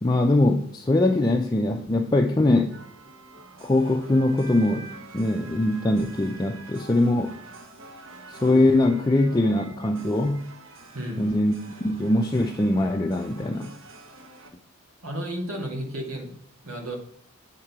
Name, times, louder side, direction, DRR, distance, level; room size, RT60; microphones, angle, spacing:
voice 1, 0.0-2.8 3.6-7.4 8.3-10.5 11.2-11.5 11.8-13.7, left 2 dB, 20° left, 2 dB, 0.4 m, -22 dB
sound 1, 2.7-14.5, right 2 dB, 65° right, 1.0 m, -46 dB
voice 2, 10.9-11.3 15.0-16.3 16.6-16.9, equal, 90° right, 1 dB, 2.0 m, -32 dB
9.0 x 3.7 x 5.9 m, 0.63 s
head